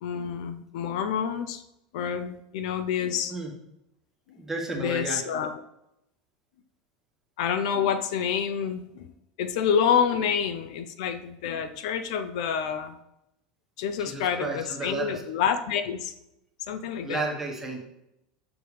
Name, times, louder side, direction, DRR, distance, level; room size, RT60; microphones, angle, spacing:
voice 1, 0.0-1.6 1.9-3.3 4.7-5.6 7.4-9.1 9.4-13.0 13.8-16.1 16.7-17.2, left 7 dB, 75° left, 10 dB, 0.6 m, -28 dB
voice 2, 4.4-5.2 14.0-15.2 17.0-17.8, right 3 dB, 10° right, 0 dB, 1.4 m, -32 dB
6.8 x 5.9 x 3.3 m, 0.85 s
supercardioid pair, 130°, 4 cm